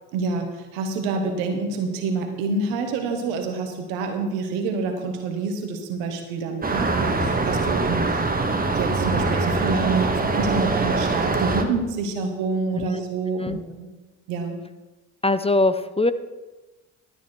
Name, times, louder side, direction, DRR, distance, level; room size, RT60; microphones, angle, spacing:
voice 1, 0.1-13.9 14.3-14.6, right 4 dB, 85° right, 5 dB, 1.6 m, -27 dB
sound 1, 6.6-11.6, right 3 dB, 20° right, 1.7 m, -23 dB
voice 2, 12.7-13.0 13.4-13.6 15.2-16.1, left 2 dB, 15° left, 13 dB, 0.7 m, -22 dB
12.5 x 8.9 x 4.6 m, 1.1 s
hypercardioid pair, 55°, 40 cm